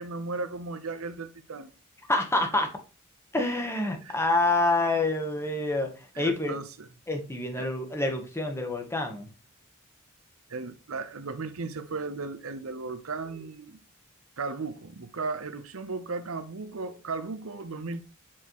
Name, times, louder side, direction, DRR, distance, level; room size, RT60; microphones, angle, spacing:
voice 1, 0.0-1.7 4.0-4.3 6.1-6.9 7.6-7.7 10.5-13.8 14.4-18.0, right 3 dB, 75° right, 0.8 m, -36 dB
voice 2, 2.1-2.7 3.3-5.9 6.2-6.5 7.1-9.3, left 2 dB, 10° left, 1.2 m, -27 dB
7.5 x 4.3 x 3.0 m
head